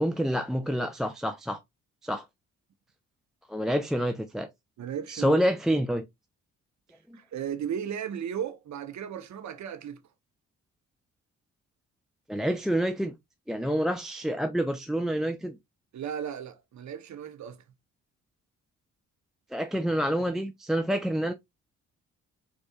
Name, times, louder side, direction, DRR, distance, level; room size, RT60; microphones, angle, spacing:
voice 1, 0.0-1.6 2.0-2.3 3.5-4.5 5.1-6.0 7.1-7.2 12.3-13.1 13.5-15.6 19.5-21.3, equal, ahead, 0.3 m, -27 dB
voice 2, 4.8-5.4 7.1-10.0 15.9-17.6, right 8 dB, 50° right, 0.7 m, -35 dB
4.2 x 2.4 x 2.3 m
hypercardioid pair, 45°, 37 cm